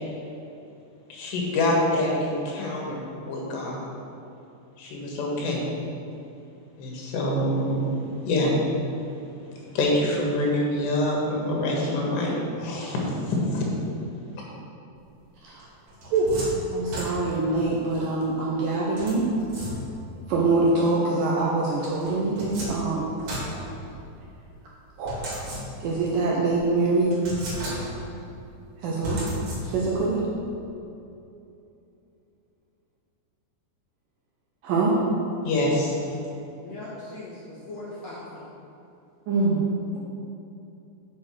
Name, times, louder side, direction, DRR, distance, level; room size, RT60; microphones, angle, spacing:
voice 1, 1.1-3.8 4.8-5.6 6.8-7.9 8.2-8.6 9.7-13.0 13.3-13.6 35.4-36.0, left 1 dB, 80° left, -2 dB, 3.8 m, -25 dB
sound 1, 15.6-17.6 19.0-20.2 21.8-24.3 25.1-26.1 26.5-26.6 27.1-28.2 29.0-30.0, equal, 55° right, 3.7 m, -35 dB
voice 2, 16.1-16.4 16.7-19.3 20.3-23.1 25.0-25.2 25.8-27.1 28.8-29.2 29.6-30.2 34.6-35.0 39.3-39.6, right 3 dB, 75° right, -4 dB, 2.1 m, -24 dB
voice 3, 36.6-38.4 39.9-40.0, left 2 dB, 60° left, -8 dB, 1.8 m, -39 dB
7.8 x 6.5 x 6.3 m, 2.7 s
omnidirectional pair, 4.9 m